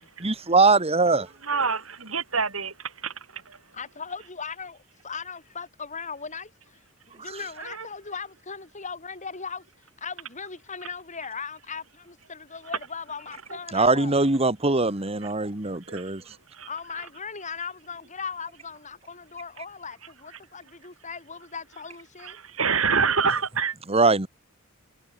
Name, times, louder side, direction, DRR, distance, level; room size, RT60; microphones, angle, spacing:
voice 1, 0.2-1.3 13.7-16.2 23.9-24.3, right 3 dB, 30° right, 2.2 m, -21 dB
voice 2, 1.4-3.6 7.6-7.9 15.8-16.7 22.2-23.8, right 5 dB, 80° right, 7.9 m, -27 dB
voice 3, 3.7-6.8 7.1-9.6 10.0-14.2 16.7-22.4, left 5 dB, 35° left, 6.6 m, -38 dB
head